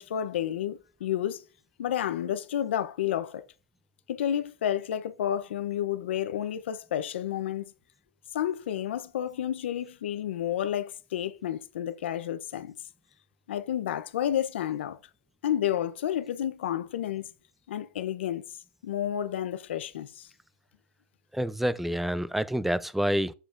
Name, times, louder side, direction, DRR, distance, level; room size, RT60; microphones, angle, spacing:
voice 1, 0.0-1.4 1.8-3.4 4.1-7.7 8.3-12.7 13.5-15.0 15.4-17.3 17.7-18.4 18.8-20.3, left 10 dB, 85° left, 0.6 m, -30 dB
voice 2, 21.3-23.3, equal, 5° right, 0.4 m, -28 dB
7.1 x 6.7 x 2.5 m
hypercardioid pair, 100°, 6 cm